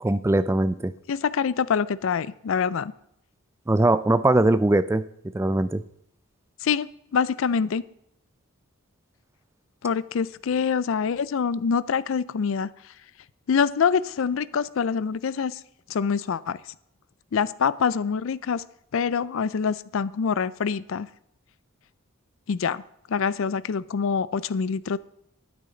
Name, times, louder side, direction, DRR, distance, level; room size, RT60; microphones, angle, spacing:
voice 1, 0.0-0.9 3.7-5.0 5.3-5.8, right 2 dB, 10° right, 13 dB, 0.3 m, -21 dB
voice 2, 1.1-2.9 6.6-7.8 9.8-12.7 13.5-15.6 15.9-16.6 17.3-18.6 18.9-21.1 22.5-22.8 23.1-25.0, left 6 dB, 65° left, 18 dB, 0.4 m, -25 dB
12.0 x 9.7 x 4.0 m, 0.74 s
head